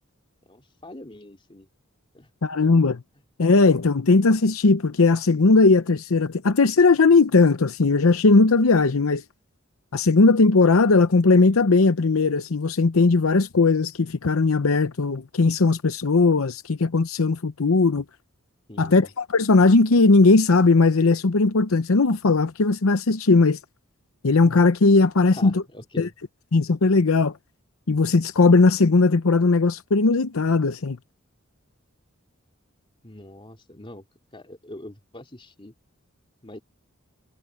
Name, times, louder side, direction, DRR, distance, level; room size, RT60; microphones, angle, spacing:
voice 1, 0.4-1.7 2.1-2.3 2.6-2.8 18.7-19.1 25.3-26.1 33.0-34.0 34.3-35.7 36.4-36.6, left 1 dB, 25° left, 3.2 m, -42 dB
voice 2, 2.4-3.0 3.4-9.2 9.9-18.0 18.8-19.1 19.3-23.6 24.2-25.6 26.0-26.1 26.5-27.3 27.9-31.0, left 3 dB, 80° left, 0.8 m, -18 dB
head